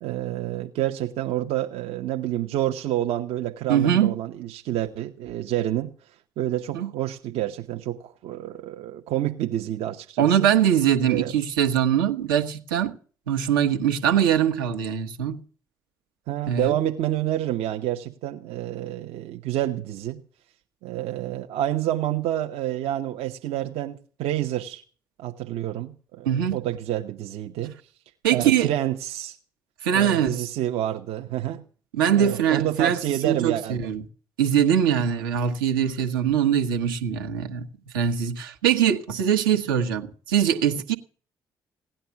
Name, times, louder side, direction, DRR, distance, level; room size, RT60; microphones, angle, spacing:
voice 1, 0.0-5.9 6.4-10.4 11.1-11.3 16.3-20.2 20.8-24.8 25.2-27.7 28.3-29.4 29.9-31.6 32.2-33.8, right 13 dB, 65° right, 0.9 m, -28 dB
voice 2, 3.7-4.2 6.7-6.9 10.2-12.9 13.3-15.4 16.5-16.7 26.2-26.6 28.2-28.7 29.8-30.4 31.9-34.0 34.4-37.7 37.9-41.0, right 9 dB, 80° right, 1.2 m, -22 dB
17.5 x 10.5 x 7.0 m
figure-of-eight pair, 45°, 11 cm